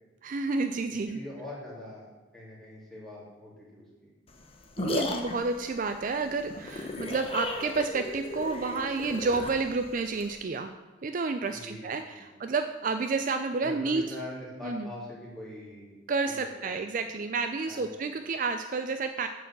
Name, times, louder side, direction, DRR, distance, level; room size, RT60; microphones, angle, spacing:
voice 1, 0.2-1.2 4.8-10.7 11.0-14.0 14.6-14.9 16.1-19.3, right 4 dB, 45° right, 7 dB, 0.4 m, -30 dB
voice 2, 1.0-2.0 2.3-4.1 11.5-12.4 13.6-15.9 16.3-16.7 17.7-17.9, left 1 dB, ahead, -7 dB, 2.9 m, -43 dB
sound 1, 4.3-10.3, left 2 dB, 30° left, 0.8 m, -35 dB
9.1 x 4.7 x 7.4 m, 1.2 s
head